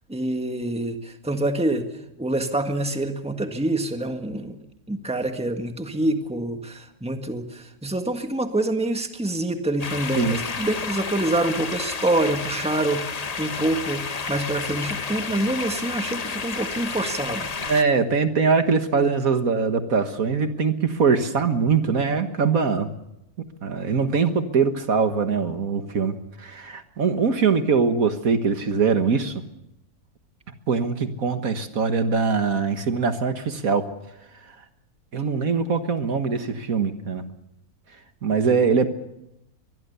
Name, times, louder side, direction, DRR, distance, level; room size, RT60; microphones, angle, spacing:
voice 1, 0.1-1.9 2.2-4.6 4.9-17.5, right 1 dB, 5° right, 5 dB, 1.6 m, -26 dB
sound 1, 9.8-17.8, left 5 dB, 35° left, 0.8 m, -31 dB
voice 2, 17.7-22.9 23.6-29.3 30.7-33.9 35.1-37.2 38.2-38.9, right 5 dB, 65° right, 8 dB, 1.9 m, -22 dB
23.5 x 21.0 x 6.9 m, 0.83 s
omnidirectional pair, 1.6 m